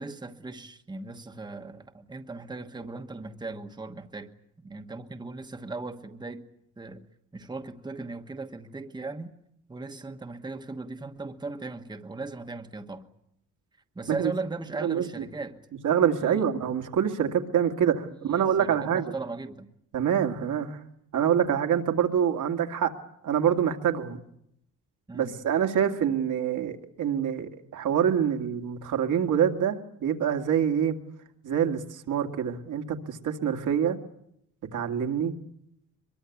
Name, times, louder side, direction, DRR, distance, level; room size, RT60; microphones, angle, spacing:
voice 1, 0.0-6.5 6.8-7.1 7.3-9.3 9.7-13.1 13.9-15.6 16.2-16.4 18.1-19.7 25.1-25.4, right 3 dB, 15° right, 1.2 m, -38 dB
voice 2, 15.8-19.1 19.9-20.8 21.1-22.9 23.2-24.2 25.1-31.0 31.4-34.0 34.7-35.3, right 8 dB, 80° right, 2.3 m, -26 dB
24.0 x 22.5 x 8.5 m
wide cardioid pair, 160°, 31 cm